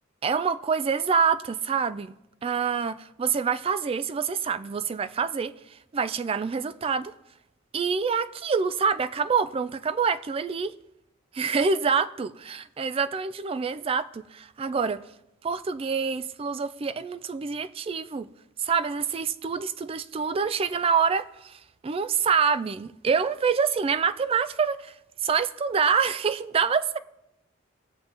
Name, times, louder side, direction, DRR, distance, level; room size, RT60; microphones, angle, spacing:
voice 1, 0.2-7.1 7.7-10.8 11.3-15.0 15.4-18.3 18.6-25.0 25.2-27.0, right 6 dB, 30° right, 0.3 m, -26 dB
19.5 x 6.9 x 2.9 m
head